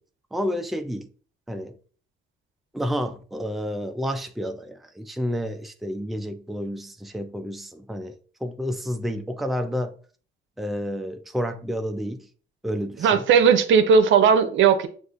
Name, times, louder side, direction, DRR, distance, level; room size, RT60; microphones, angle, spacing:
voice 1, 0.3-1.1 1.5-1.7 2.7-10.0 10.6-12.3 12.6-13.2, equal, ahead, 0.4 m, -30 dB
voice 2, 13.0-14.9, right 6 dB, 75° right, 0.6 m, -17 dB
6.4 x 2.5 x 2.4 m
cardioid pair, 90°, 20 cm